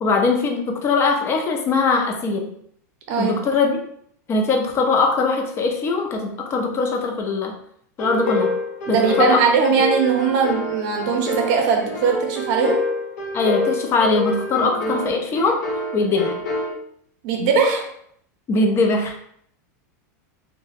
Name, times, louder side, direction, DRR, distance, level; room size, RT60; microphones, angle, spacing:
voice 1, 0.0-2.5 3.2-3.8 4.3-7.5 8.0-8.5 8.9-9.4 13.3-15.6 15.9-16.4 18.5-19.2, left 3 dB, 25° left, 3 dB, 0.4 m, -21 dB
sound 1, 8.0-16.7, left 2 dB, 70° left, 0.8 m, -27 dB
voice 2, 8.9-12.8 14.8-14.9 17.2-17.9, right 5 dB, 50° right, 3 dB, 0.6 m, -20 dB
2.3 x 2.1 x 3.3 m, 0.67 s
supercardioid pair, 135°, 9 cm